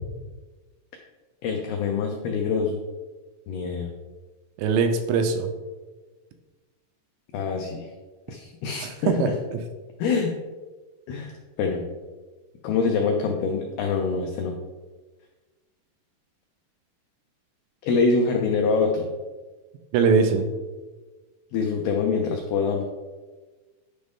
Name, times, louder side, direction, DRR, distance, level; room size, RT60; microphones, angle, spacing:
voice 1, 1.4-2.8 3.5-3.9 7.3-7.9 8.3-9.4 10.0-10.4 11.1-11.8 12.6-14.6 17.8-19.1 21.5-22.8, left 4 dB, 85° left, 2 dB, 2.2 m, -25 dB
voice 2, 4.6-5.5 8.8-9.6 19.9-20.5, right 5 dB, 80° right, 6 dB, 2.8 m, -22 dB
10.0 x 5.2 x 3.6 m, 1.3 s
omnidirectional pair, 5.3 m